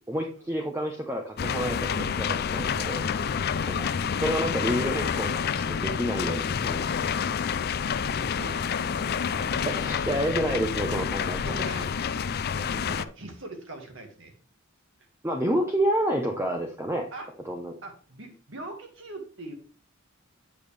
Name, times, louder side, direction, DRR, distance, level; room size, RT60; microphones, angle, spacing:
voice 1, 0.1-3.0 3.8-3.9 4.2-7.0 9.7-11.4 15.2-17.1 17.5-17.7, right 1 dB, 10° right, 2 dB, 0.8 m, -29 dB
sound 1, 1.4-13.0, left 6 dB, 50° left, 0.4 m, -28 dB
voice 2, 3.5-3.9 7.5-9.2 11.4-12.1 12.5-14.3 17.1-17.3 17.8-19.5, right 2 dB, 60° right, 4 dB, 2.0 m, -43 dB
8.4 x 7.0 x 3.4 m, 0.38 s
head